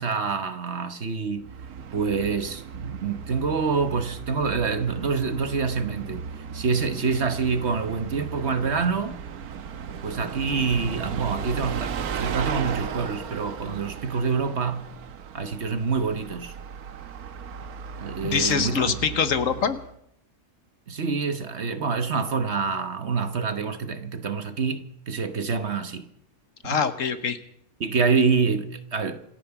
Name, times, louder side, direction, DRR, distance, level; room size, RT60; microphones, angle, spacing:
voice 1, 0.0-1.5 1.9-6.3 6.5-9.2 10.0-14.9 15.3-16.5 18.0-19.0 20.9-26.1 26.6-26.8 27.8-29.4, right 5 dB, 50° right, 1.3 m, -26 dB
Bus, 1.4-20.0, right 7 dB, 80° right, 1.5 m, -36 dB
voice 2, 18.2-19.8 26.6-27.4, left 6 dB, 60° left, 1.3 m, -24 dB
26.5 x 9.2 x 5.9 m
omnidirectional pair, 1.6 m